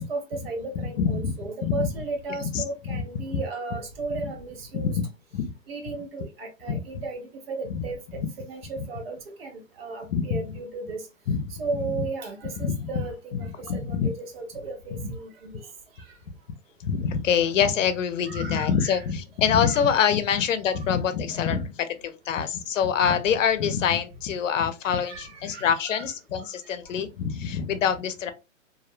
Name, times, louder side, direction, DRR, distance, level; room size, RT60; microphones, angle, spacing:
voice 1, 0.0-5.0 5.7-11.0 11.6-15.6 18.3-19.0 19.6-19.8 21.5-21.6 24.8-26.0 26.4-26.5, right 3 dB, 50° right, 0.8 m, -35 dB
voice 2, 0.7-1.3 1.6-1.9 2.3-3.4 4.7-5.1 5.3-5.5 5.8-6.0 6.7-7.0 7.7-7.9 8.8-8.9 10.1-10.6 11.3-11.5 11.8-12.1 12.6-13.1 13.3-14.1 14.9-15.0 16.8-28.3, left 7 dB, 70° left, 0.6 m, -26 dB
2.5 x 2.1 x 2.4 m
hypercardioid pair, 160°, 39 cm